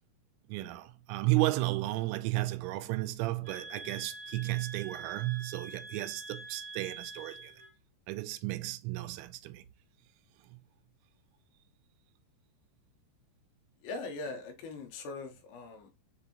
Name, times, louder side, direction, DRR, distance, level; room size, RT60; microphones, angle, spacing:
voice 1, 0.5-7.5 8.1-9.6, right 19 dB, 85° right, 2.9 m, -33 dB
sound 1, 3.4-7.7, right 3 dB, 70° right, 2.6 m, -45 dB
voice 2, 13.8-15.9, left 3 dB, 80° left, 2.7 m, -41 dB
6.9 x 2.6 x 2.7 m
omnidirectional pair, 5.2 m